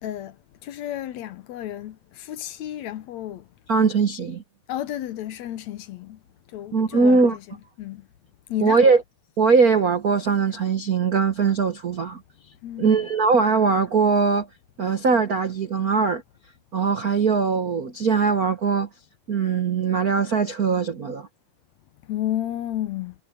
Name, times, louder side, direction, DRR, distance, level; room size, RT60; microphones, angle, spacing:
voice 1, 0.0-0.4 0.6-3.5 4.7-6.2 6.5-8.1 8.5-8.9 12.6-13.1 22.1-23.2, left 12 dB, 70° left, 2.1 m, -32 dB
voice 2, 3.7-4.4 6.7-7.4 8.6-9.0 9.4-12.2 12.8-14.5 14.8-16.2 16.7-18.9 19.3-21.3, right 5 dB, 60° right, 0.9 m, -21 dB
omnidirectional pair, 3.5 m